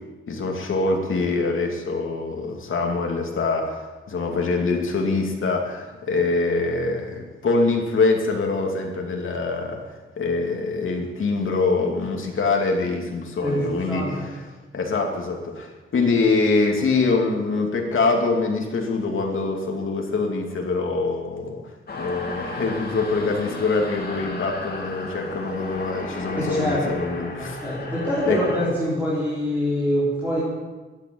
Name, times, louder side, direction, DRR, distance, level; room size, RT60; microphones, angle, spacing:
voice 1, 0.3-3.8 4.1-9.8 10.2-14.4 14.7-21.6 21.9-27.6 28.3-28.4, left 3 dB, 75° left, 1 dB, 2.7 m, -24 dB
voice 2, 13.4-14.3 26.4-30.4, equal, 10° right, -8 dB, 3.7 m, -25 dB
mosters of the abyss (PS), 21.9-28.6, left 2 dB, 50° left, 2.3 m, -34 dB
13.0 x 9.4 x 8.6 m, 1.2 s
wide cardioid pair, 160°, 21 cm